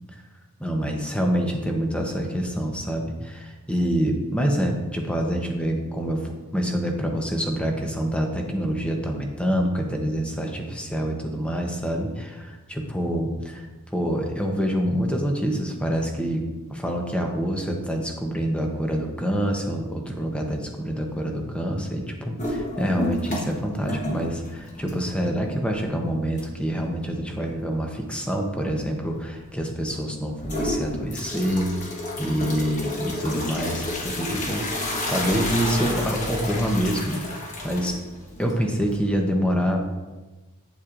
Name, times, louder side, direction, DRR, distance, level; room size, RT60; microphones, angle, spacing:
voice 1, 0.6-6.2 6.5-13.6 13.9-31.8 32.2-38.0 38.4-39.8, equal, 5° left, 2 dB, 0.8 m, -26 dB
sound 1, 22.4-23.6 23.9-25.2 25.7-25.8 26.4-26.5 30.4-39.2, left 1 dB, 35° left, 1.2 m, -30 dB
8.4 x 7.3 x 2.5 m, 1.2 s
head